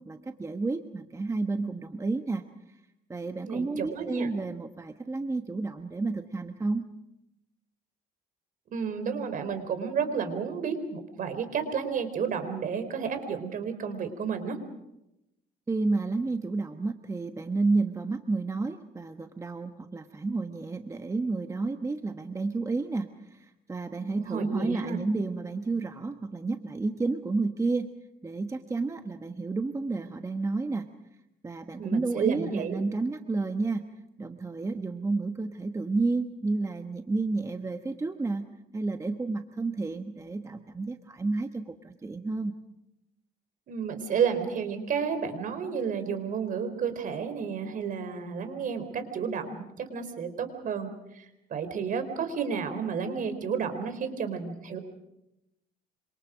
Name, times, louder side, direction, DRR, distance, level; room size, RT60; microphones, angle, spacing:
voice 1, 0.1-2.5 3.1-6.9 15.7-27.9 28.2-30.9 31.4-33.9 34.2-38.5 38.7-42.6, right 3 dB, 20° right, 7 dB, 1.2 m, -31 dB
voice 2, 3.4-4.3 8.7-14.6 24.2-25.0 31.8-32.8 43.7-54.8, right 6 dB, 55° right, 9 dB, 4.2 m, -31 dB
27.0 x 26.5 x 5.1 m, 0.87 s
cardioid pair, 110°, 17 cm